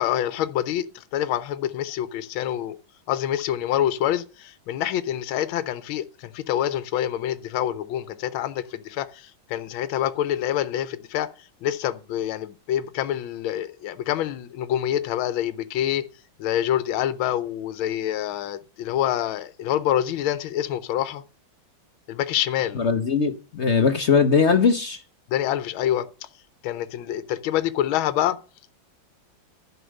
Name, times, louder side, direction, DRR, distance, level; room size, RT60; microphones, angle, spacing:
voice 1, 0.0-2.8 3.1-11.3 11.6-16.1 16.4-21.2 22.1-22.8 25.3-26.1 26.6-28.4, left 11 dB, 85° left, 1.5 m, -26 dB
voice 2, 22.8-25.0, left 5 dB, 55° left, 0.7 m, -20 dB
11.0 x 5.7 x 6.4 m
omnidirectional pair, 2.2 m